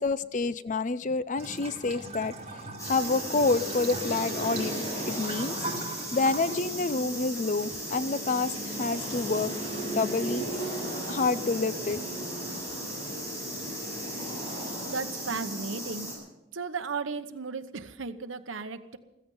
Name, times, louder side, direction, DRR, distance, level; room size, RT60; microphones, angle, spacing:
voice 1, 0.0-5.5 6.1-9.5 9.9-10.4 11.1-12.0, left 3 dB, 40° left, 15 dB, 0.5 m, -28 dB
Bathtub (filling or washing) / Trickle dribble, 1.4-12.3, right 2 dB, 30° right, 2.3 m, -43 dB
sound 1, 2.8-16.2, right 1 dB, 15° left, 7.5 m, -35 dB
voice 2, 14.8-16.1 16.5-19.0, right 4 dB, 85° right, 10 dB, 1.0 m, -35 dB
15.5 x 15.0 x 5.6 m, 0.92 s
head